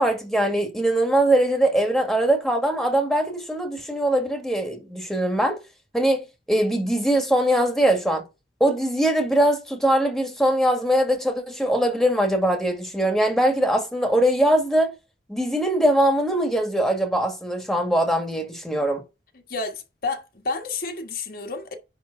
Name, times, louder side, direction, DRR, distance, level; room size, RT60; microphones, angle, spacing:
voice 1, 0.0-5.6 5.9-8.2 8.6-14.9 15.3-19.0, right 1 dB, ahead, 1.8 m, -21 dB
voice 2, 19.5-21.7, left 3 dB, 55° left, 1.6 m, -30 dB
10.5 x 3.7 x 5.4 m
head